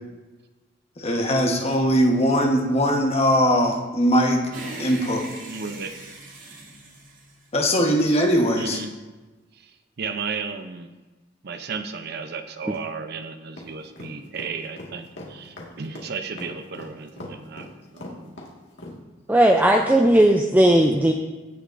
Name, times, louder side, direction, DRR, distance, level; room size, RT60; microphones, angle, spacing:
voice 1, 1.0-4.4 4.8-5.2 7.5-8.8, equal, 35° left, 1 dB, 1.2 m, -20 dB
sound 1, 4.5-8.0, right 2 dB, 80° right, 2.8 m, -40 dB
voice 2, 5.5-5.9 8.6-8.9 9.5-10.9 11.4-17.7 17.9-18.4 19.3-19.4 19.7-19.9, right 5 dB, 60° right, 8 dB, 0.6 m, -34 dB
sound 2, 13.6-19.0, left 1 dB, 65° left, 1.9 m, -39 dB
voice 3, 19.3-21.1, right 1 dB, 10° right, 2 dB, 0.4 m, -16 dB
16.5 x 6.6 x 2.6 m, 1.2 s
head